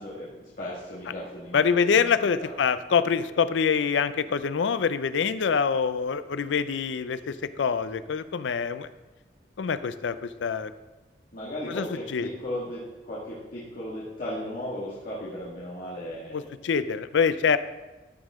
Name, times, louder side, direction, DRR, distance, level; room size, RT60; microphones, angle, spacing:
voice 1, 0.0-2.6 11.3-16.5, left 1 dB, 50° left, -9 dB, 1.8 m, -36 dB
voice 2, 1.5-8.9 9.6-10.7 11.7-11.9 12.1-12.3 16.3-17.6, left 6 dB, 80° left, 13 dB, 0.4 m, -25 dB
13.5 x 5.5 x 3.6 m, 1.1 s
head